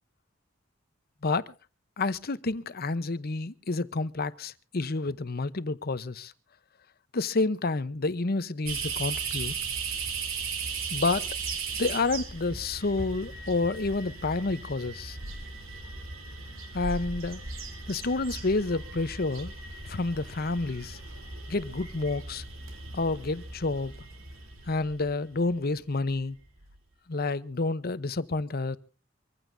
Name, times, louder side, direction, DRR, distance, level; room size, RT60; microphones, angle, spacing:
voice 1, 1.2-1.5 2.0-6.3 7.1-9.5 10.9-11.3 11.8-15.2 16.7-17.4 17.9-19.5 19.9-21.0 21.5-22.4 22.9-23.9 24.7-26.4 27.1-28.8, left 3 dB, 50° left, 0.9 m, -29 dB
sound 1, 8.7-25.5 26.1-26.2 26.6-26.8, right 4 dB, 85° right, 3.4 m, -37 dB
25.5 x 15.5 x 2.7 m
head